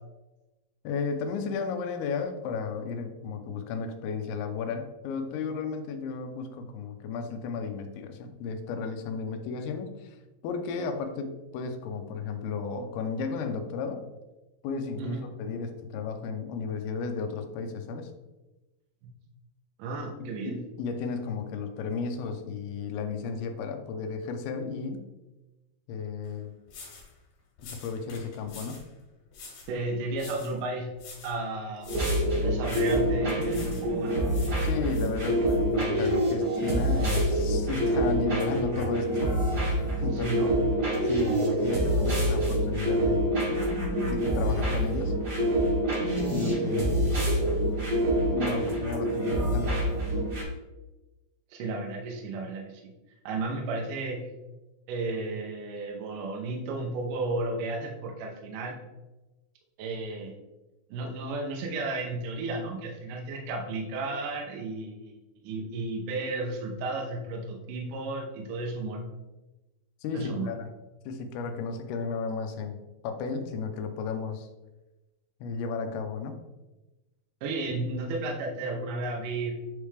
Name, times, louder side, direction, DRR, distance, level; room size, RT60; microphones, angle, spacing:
voice 1, 0.8-10.2 10.4-14.1 14.6-18.1 20.2-25.1 25.9-26.5 27.6-28.8 34.6-40.5 41.0-43.4 44.0-45.2 46.2-47.2 48.3-49.8 70.0-70.7 71.1-72.8 73.0-74.5 75.4-76.4, left 5 dB, 80° left, 6 dB, 2.6 m, -34 dB
voice 2, 15.0-15.3 19.0-19.1 19.8-20.6 29.7-31.0 31.2-31.9 32.4-34.2 40.1-40.6 51.5-52.9 53.3-54.3 54.9-58.8 59.8-60.3 60.9-65.2 65.4-69.0 70.1-70.5 77.4-79.6, right 2 dB, 75° right, 0 dB, 2.0 m, -33 dB
sound 1, 26.2-26.3 26.7-27.1 27.6-28.9 29.3-29.7 30.1-30.6 31.0-31.4 31.8-32.2 32.6-33.1 33.5-33.9 34.3-35.6, left 4 dB, 65° left, 3.0 m, -47 dB
sound 2, 31.9-50.4, right 1 dB, 50° right, 1.2 m, -26 dB
8.7 x 3.3 x 3.3 m, 1.1 s
omnidirectional pair, 4.6 m